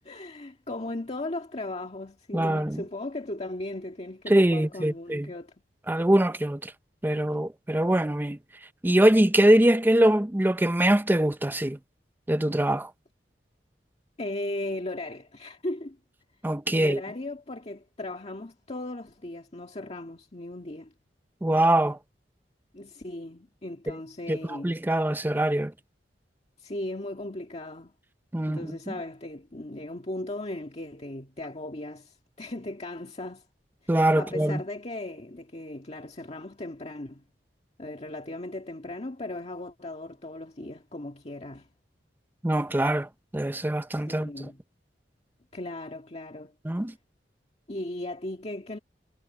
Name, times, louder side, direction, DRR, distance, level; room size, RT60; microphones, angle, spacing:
voice 1, 0.0-5.5 14.2-16.0 16.7-20.9 22.7-24.7 26.6-27.9 28.5-33.4 34.1-37.2 37.8-41.7 44.1-44.6 45.5-46.5 47.7-48.8, left 1 dB, 40° left, 1.8 m, -37 dB
voice 2, 2.3-2.8 4.3-5.3 5.9-6.7 7.0-8.4 8.8-11.8 12.3-12.9 16.4-17.0 21.4-22.0 23.9-24.0 24.3-25.7 28.3-28.9 33.9-34.6 42.4-44.5 46.6-46.9, right 1 dB, 10° right, 0.6 m, -23 dB
head